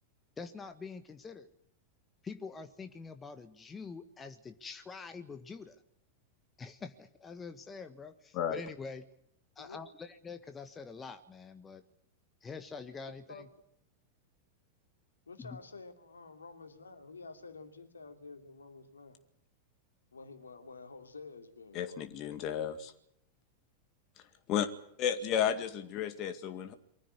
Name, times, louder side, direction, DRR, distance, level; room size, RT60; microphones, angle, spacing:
voice 1, 0.4-1.5 2.2-5.8 6.6-9.0 9.5-11.8 12.4-13.5 15.4-15.6, left 5 dB, 15° left, 1.5 m, -45 dB
voice 2, 15.3-19.2 20.1-22.0 25.4-25.7, left 4 dB, 75° left, 2.8 m, -49 dB
voice 3, 21.7-22.9 24.5-24.7 25.0-26.7, left 9 dB, 40° left, 2.0 m, -32 dB
24.0 x 15.0 x 9.7 m
figure-of-eight pair, 90°, 0 cm